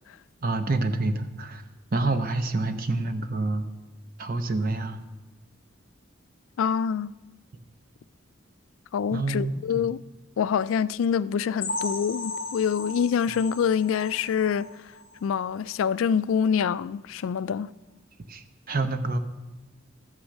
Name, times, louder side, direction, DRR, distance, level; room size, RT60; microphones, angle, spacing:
voice 1, 0.4-1.6 1.9-3.7 4.2-5.0 9.1-9.9 18.3-19.2, right 2 dB, 45° right, 0.8 m, -27 dB
voice 2, 6.6-7.1 8.9-10.0 10.4-14.7 15.2-17.7, left 7 dB, 80° left, 0.3 m, -25 dB
sound 1, 11.6-15.2 15.6-15.8 16.1-16.2 16.7-16.8, left 3 dB, 45° left, 1.7 m, -36 dB
13.5 x 7.2 x 6.4 m
head